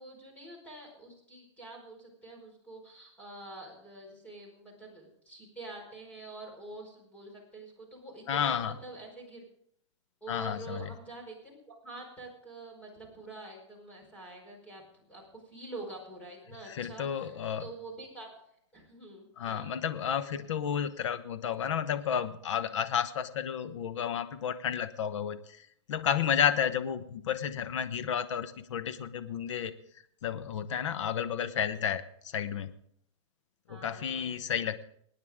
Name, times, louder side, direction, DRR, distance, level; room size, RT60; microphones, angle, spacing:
voice 1, 0.0-9.4 10.2-18.4 18.7-19.8 33.7-34.4, right 2 dB, 10° left, -1 dB, 5.0 m, -46 dB
voice 2, 8.3-8.8 10.3-10.9 16.7-17.7 19.4-29.7 30.2-32.7 33.7-34.8, left 8 dB, 80° left, 12 dB, 1.1 m, -32 dB
25.5 x 9.5 x 3.7 m, 0.69 s
supercardioid pair, 150°, 15 cm